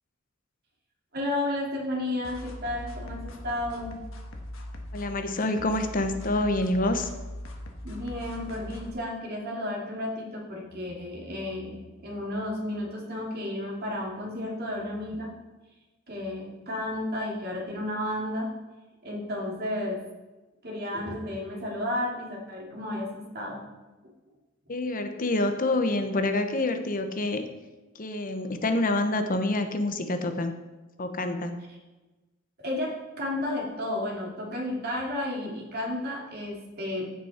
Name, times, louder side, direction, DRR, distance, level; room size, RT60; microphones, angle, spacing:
voice 1, 1.1-4.0 7.8-15.3 16.1-18.5 19.0-20.0 20.6-23.6 32.6-37.0, left 1 dB, 50° right, -3 dB, 2.9 m, -32 dB
sound 1, 2.2-8.9, left 1 dB, 70° left, 1.5 m, -40 dB
voice 2, 4.9-7.1 24.7-27.5 27.9-30.5 31.0-31.6, left 2 dB, 45° left, 7 dB, 0.9 m, -27 dB
15.5 x 6.1 x 4.4 m, 1.1 s
head